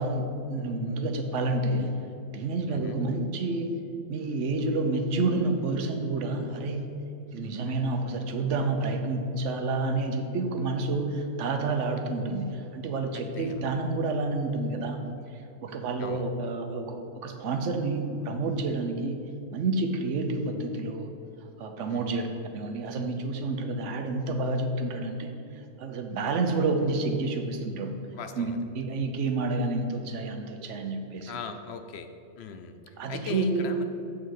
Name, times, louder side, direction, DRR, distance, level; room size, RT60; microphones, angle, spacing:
voice 1, 0.0-2.0 2.3-3.7 4.1-6.9 7.3-15.0 15.3-19.1 19.5-21.1 21.6-22.3 22.5-25.4 25.8-28.0 28.4-31.3 33.0-33.7, right 3 dB, 85° right, 5 dB, 1.1 m, -29 dB
voice 2, 2.7-3.0 13.1-13.7 16.0-16.3 21.9-22.3 28.1-28.6 31.3-32.1 32.4-32.8 33.1-33.8, left 5 dB, 70° left, 7 dB, 0.8 m, -39 dB
7.8 x 3.6 x 6.4 m, 2.7 s
omnidirectional pair, 1.2 m